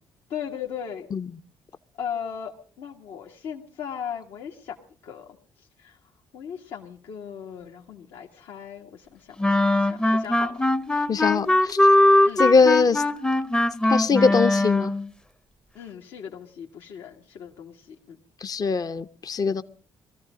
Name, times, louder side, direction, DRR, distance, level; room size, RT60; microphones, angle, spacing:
voice 1, 0.3-1.1 2.0-4.8 5.0-6.0 6.3-10.6 12.2-12.4 15.7-18.2, left 8 dB, 75° left, 1.6 m, -37 dB
sound 1, 9.4-15.1, left 1 dB, 10° left, 0.7 m, -20 dB
voice 2, 11.1-11.8 12.4-13.0 13.9-14.9 18.4-19.6, left 4 dB, 40° left, 0.8 m, -21 dB
20.0 x 14.0 x 5.0 m
supercardioid pair, 55°, 10 cm